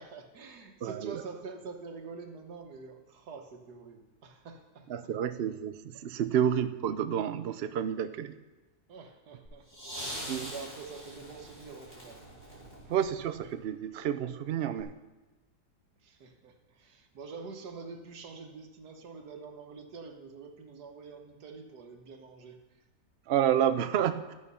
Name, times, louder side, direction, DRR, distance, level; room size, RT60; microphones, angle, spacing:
voice 1, 0.0-4.9 6.0-6.1 8.9-12.2 16.0-22.6, right 4 dB, 85° right, 5 dB, 1.7 m, -46 dB
voice 2, 0.8-1.1 4.9-8.3 10.3-10.5 12.9-14.9 23.3-24.3, right 9 dB, 65° right, 10 dB, 0.6 m, -30 dB
sound 1, 9.5-13.6 14.8-14.9, equal, 25° left, 4.3 m, -43 dB
12.5 x 8.7 x 5.5 m, 1.1 s
omnidirectional pair, 1.7 m